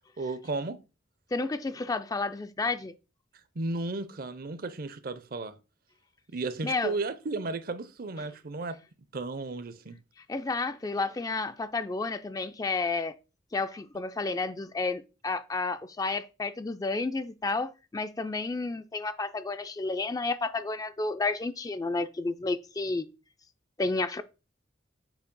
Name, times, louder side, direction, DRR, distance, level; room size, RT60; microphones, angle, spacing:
voice 1, 0.2-0.8 3.6-5.6 6.3-8.8 9.1-10.0, right 3 dB, 50° right, 0.6 m, -34 dB
voice 2, 1.3-2.9 6.6-6.9 10.3-13.1 13.5-23.1 23.8-24.2, left 3 dB, 20° left, 0.3 m, -31 dB
7.0 x 2.8 x 5.2 m
head